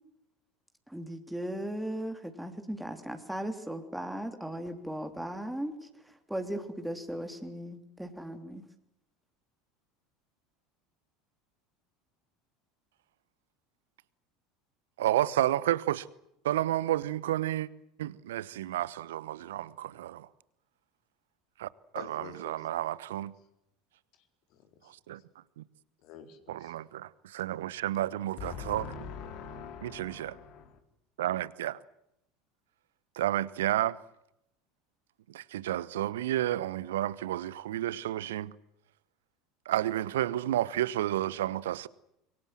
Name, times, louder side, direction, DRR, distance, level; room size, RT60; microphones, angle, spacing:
voice 1, 0.9-8.6, right 1 dB, 5° right, 3.2 m, -37 dB
voice 2, 15.0-16.1 16.4-17.7 18.0-20.3 21.6-23.3 24.9-25.2 25.6-25.7 26.5-28.9 29.8-30.3 31.2-31.8 33.1-34.0 35.3-38.5 39.6-41.9, right 13 dB, 65° right, 1.0 m, -31 dB
voice 3, 21.9-22.7 24.5-24.9 26.0-26.8 28.4-30.8, left 6 dB, 50° left, 4.2 m, -44 dB
26.0 x 23.5 x 7.6 m
figure-of-eight pair, 75°, 0 cm